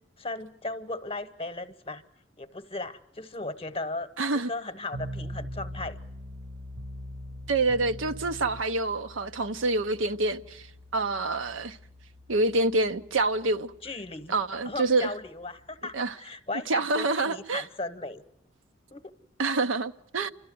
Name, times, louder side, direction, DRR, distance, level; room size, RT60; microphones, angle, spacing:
voice 1, 0.2-2.0 2.4-4.1 4.3-6.0 13.8-14.3 14.6-18.2 18.9-19.1, left 2 dB, 30° left, 0.9 m, -36 dB
voice 2, 4.2-4.5 7.5-10.7 10.9-11.8 12.3-13.7 14.3-15.1 15.9-16.1 16.7-17.6 19.4-20.3, right 3 dB, 85° right, 0.8 m, -27 dB
sound 1, 4.9-16.1, equal, 45° right, 0.9 m, -43 dB
29.5 x 13.0 x 9.3 m
head